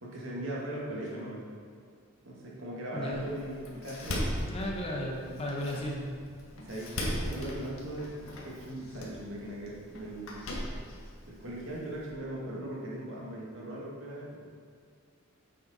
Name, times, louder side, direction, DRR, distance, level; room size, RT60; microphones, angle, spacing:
voice 1, 0.0-1.5 2.2-4.4 5.6-5.8 6.5-10.5 11.3-14.5, right 1 dB, 65° right, -4 dB, 2.2 m, -39 dB
voice 2, 2.9-3.3 4.4-6.0, left 1 dB, 30° left, -1 dB, 1.3 m, -35 dB
Door, 3.1-12.1, equal, 85° left, 1.7 m, -39 dB
9.2 x 6.8 x 4.3 m, 2.2 s
head